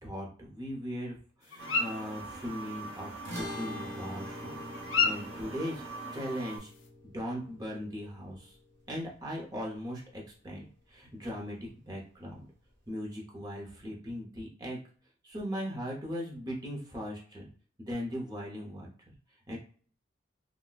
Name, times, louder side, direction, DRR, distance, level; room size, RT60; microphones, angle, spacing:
voice 1, 0.0-4.6 5.0-5.8 6.1-6.7 7.0-8.6 8.9-12.4 12.9-14.8 15.2-17.5 17.8-18.9 19.5-19.6, equal, 20° right, -2 dB, 0.7 m, -39 dB
sound 1, 1.4-6.9, left 5 dB, 80° left, 0.5 m, -33 dB
sound 2, 1.6-6.6, right 3 dB, 65° right, 0.7 m, -43 dB
sound 3, 3.2-9.8, left 1 dB, 85° right, 1.0 m, -45 dB
3.9 x 2.1 x 2.3 m, 0.43 s
head